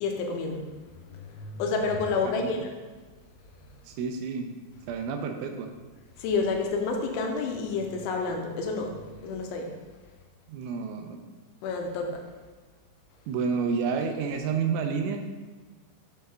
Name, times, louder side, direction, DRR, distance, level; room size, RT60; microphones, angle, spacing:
voice 1, 0.0-2.7 3.5-3.9 6.2-9.8 11.6-12.2, left 4 dB, 85° left, 2 dB, 3.1 m, -30 dB
voice 2, 3.9-4.5 4.9-5.7 10.5-11.2 13.3-15.3, right 5 dB, 85° right, 5 dB, 3.1 m, -29 dB
7.7 x 5.5 x 3.5 m, 1.4 s
omnidirectional pair, 5.5 m